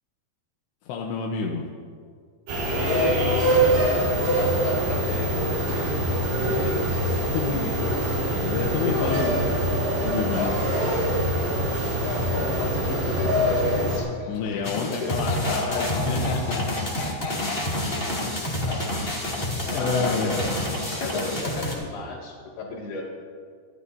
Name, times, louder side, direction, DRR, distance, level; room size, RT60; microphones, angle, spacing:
voice 1, 0.9-1.7 7.3-7.9 8.3-9.4 10.1-10.5 14.3-16.6 18.2-18.3 19.6-20.4, left 5 dB, 80° left, 0 dB, 3.1 m, -29 dB
sound 1, 2.5-14.0, right 1 dB, 80° right, 6.4 m, -24 dB
voice 2, 2.6-8.1 8.8-9.3 10.4-10.6 12.0-18.2 18.7-19.1 19.7-20.5 21.0-23.0, left 4 dB, 65° left, -2 dB, 4.2 m, -33 dB
sound 2, 14.6-21.7, left 1 dB, 15° left, 2.0 m, -28 dB
26.0 x 13.0 x 2.8 m, 2.1 s
omnidirectional pair, 5.1 m